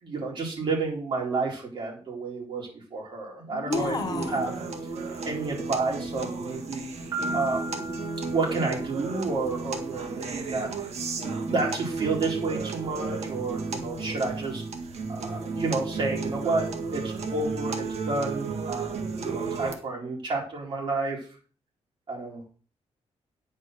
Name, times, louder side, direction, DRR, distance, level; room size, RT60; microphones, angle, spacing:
voice 1, 0.0-4.5 5.2-6.9 7.3-7.6 8.3-10.8 11.5-14.6 15.1-21.3 22.1-22.4, right 3 dB, 45° right, -2 dB, 4.4 m, -30 dB
voice 2, 3.5-4.5, left 4 dB, 35° left, 7 dB, 0.9 m, -31 dB
sound 1, 3.7-19.7, right 4 dB, 65° right, 1.8 m, -33 dB
Piano, 7.1-9.0, right 1 dB, 30° right, 6.4 m, -36 dB
9.5 x 5.4 x 6.4 m, 0.39 s
wide cardioid pair, 180°, 12 cm